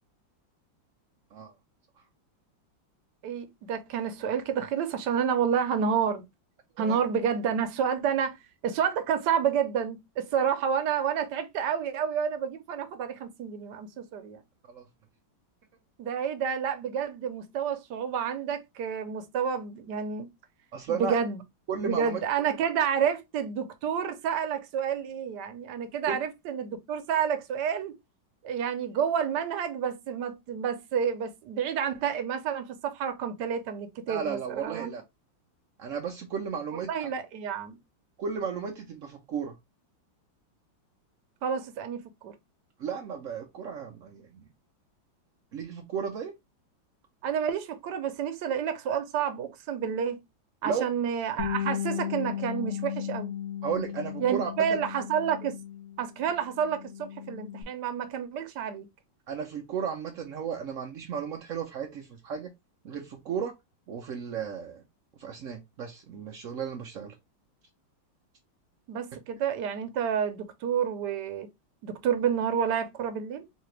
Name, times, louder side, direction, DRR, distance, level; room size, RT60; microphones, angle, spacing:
voice 1, 3.2-6.2 6.8-8.4 8.6-14.4 16.0-20.3 20.9-21.4 21.8-28.0 28.4-35.0 36.9-37.8 41.4-42.3 47.2-50.2 50.6-53.3 54.2-55.6 56.0-58.9 68.9-71.5 71.8-73.4, right 7 dB, 70° right, 1.2 m, -29 dB
voice 2, 20.7-21.2 21.7-22.2 26.1-26.2 34.1-35.0 35.8-37.1 38.2-39.5 42.8-44.4 45.5-46.3 50.6-50.8 53.6-54.8 59.3-62.5 62.8-63.5 63.9-64.8 65.2-67.1, right 7 dB, 85° right, 0.6 m, -34 dB
Bass guitar, 51.4-56.1 56.4-57.6, left 10 dB, 55° left, 0.9 m, -35 dB
4.1 x 2.8 x 3.0 m
omnidirectional pair, 2.1 m